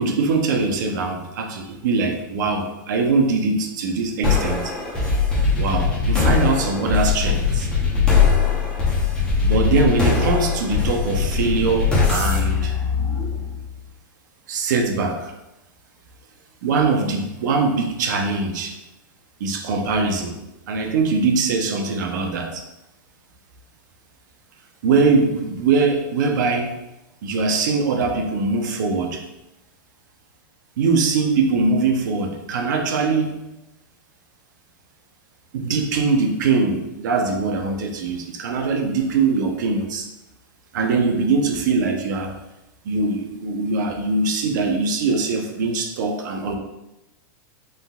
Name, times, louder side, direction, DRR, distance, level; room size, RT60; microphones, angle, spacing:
voice 1, 0.0-4.7 5.6-7.7 9.4-12.7 14.5-15.3 16.6-18.7 19.4-20.4 20.7-22.6 24.8-26.7 27.2-29.2 30.8-33.4 35.5-40.1 40.7-42.3 42.8-46.5, right 4 dB, 60° right, 3 dB, 0.8 m, -22 dB
sound 1, 4.2-13.7, left 5 dB, 10° left, 1.0 m, -20 dB
5.6 x 3.8 x 2.4 m, 0.94 s
supercardioid pair, 170°, 11 cm